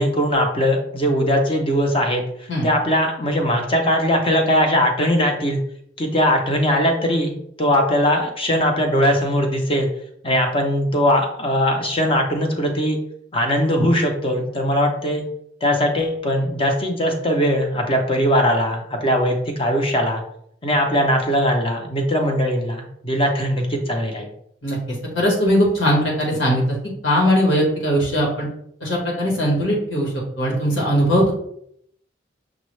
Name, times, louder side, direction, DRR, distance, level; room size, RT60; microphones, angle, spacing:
voice 1, 0.0-2.2 2.6-5.6 6.0-9.9 10.2-13.0 13.3-15.3 15.6-20.2 20.6-24.3, equal, 30° left, 3 dB, 0.7 m, -20 dB
voice 2, 25.1-26.7 27.0-28.5 28.8-30.1 30.4-31.3, equal, 80° left, -3 dB, 1.7 m, -19 dB
6.1 x 2.3 x 3.2 m, 0.70 s
head